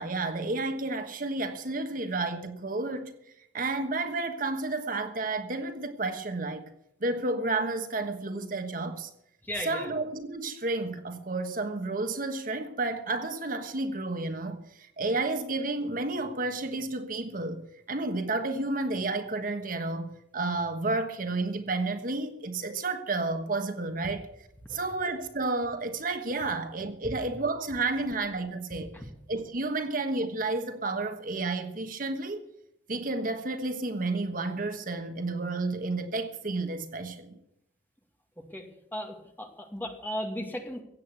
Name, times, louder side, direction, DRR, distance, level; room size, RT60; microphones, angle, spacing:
voice 1, 0.0-3.1 3.5-6.6 7.0-9.1 9.6-17.6 17.9-24.3 24.7-28.9 29.3-32.4 32.9-37.4, right 2 dB, 50° right, 1.3 m, -31 dB
voice 2, 9.4-9.9 24.6-24.8 28.9-29.1 38.5-38.7 38.9-40.8, equal, 10° left, 2.1 m, -36 dB
16.0 x 8.4 x 8.3 m
head